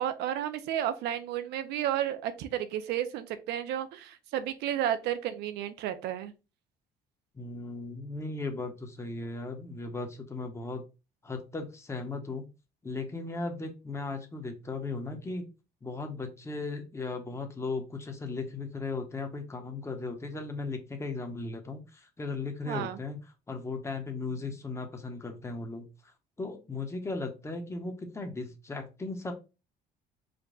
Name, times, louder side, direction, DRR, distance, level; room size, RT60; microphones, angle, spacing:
voice 1, 0.0-6.3 22.6-23.0, right 11 dB, 85° right, 11 dB, 0.7 m, -32 dB
voice 2, 7.3-10.8 11.2-12.5 12.8-15.5 15.8-23.2 23.5-26.1 26.4-29.3, left 3 dB, 15° left, 4 dB, 1.0 m, -37 dB
5.2 x 2.3 x 3.9 m, 0.29 s
cardioid pair, 110°, 17 cm